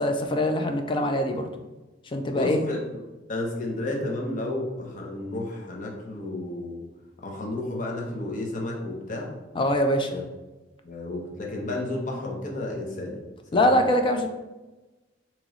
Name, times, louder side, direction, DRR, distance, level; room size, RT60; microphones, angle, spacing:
voice 1, 0.0-1.5 2.1-2.6 9.6-10.1 13.5-14.3, left 1 dB, 25° left, 5 dB, 0.4 m, -23 dB
voice 2, 2.3-2.8 3.3-6.8 7.2-9.3 10.1-10.2 10.8-13.2 13.5-13.8, left 2 dB, 45° left, -1 dB, 0.7 m, -32 dB
3.0 x 3.0 x 3.7 m, 1.1 s
head